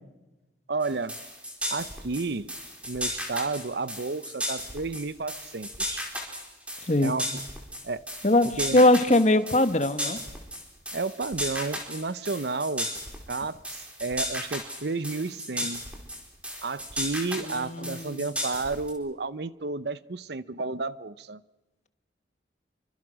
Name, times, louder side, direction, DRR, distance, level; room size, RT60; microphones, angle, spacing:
voice 1, 0.7-1.2 1.7-2.5 2.9-6.0 7.0-7.3 7.8-8.0 8.6-8.8 10.9-12.9 13.3-15.8 16.6-21.4, right 3 dB, 65° right, 17 dB, 0.8 m, -31 dB
sound 1, 0.8-18.9, equal, 5° right, 4.4 m, -35 dB
voice 2, 8.2-10.2 17.4-18.2, left 1 dB, 40° left, 11 dB, 1.3 m, -21 dB
29.0 x 25.0 x 6.3 m, 1.1 s
head